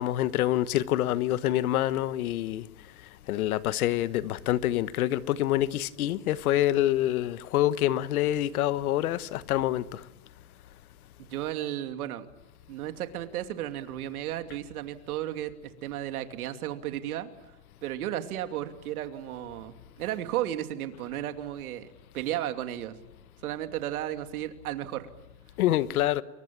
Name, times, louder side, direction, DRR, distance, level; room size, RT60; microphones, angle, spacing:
voice 1, 0.0-2.6 3.3-10.0 25.6-26.2, left 13 dB, 65° left, 1.3 m, -26 dB
voice 2, 11.2-12.3 12.7-17.3 17.8-21.9 22.1-23.0 23.4-25.1, right 12 dB, 65° right, 2.7 m, -34 dB
29.5 x 23.0 x 8.8 m
supercardioid pair, 170°, 47 cm